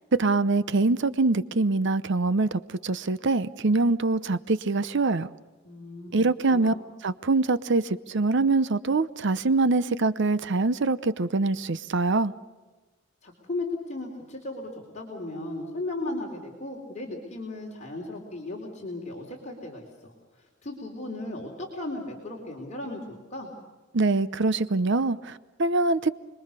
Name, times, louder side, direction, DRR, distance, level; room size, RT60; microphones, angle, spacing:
voice 1, 0.1-5.3 6.1-6.7 7.0-12.3 23.9-26.1, right 3 dB, 60° right, 0.8 m, -24 dB
voice 2, 5.6-6.1 6.5-6.8 13.2-23.5, left 2 dB, 35° left, 3.9 m, -36 dB
29.5 x 22.0 x 6.8 m
head